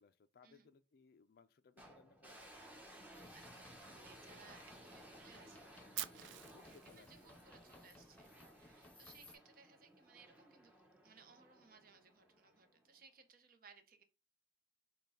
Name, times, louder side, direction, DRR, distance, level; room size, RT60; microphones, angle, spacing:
voice 1, 0.0-2.6 6.5-7.3, left 5 dB, 50° left, 0.3 m, -66 dB
sound 1, 1.8-13.0, right 1 dB, 10° right, 0.9 m, -59 dB
voice 2, 3.0-10.7 11.0-14.0, right 5 dB, 50° right, 0.7 m, -64 dB
sound 2, 3.1-9.4, left 2 dB, 5° left, 0.6 m, -62 dB
Fire, 6.0-8.0, right 14 dB, 70° right, 0.3 m, -47 dB
6.4 x 2.2 x 3.5 m
head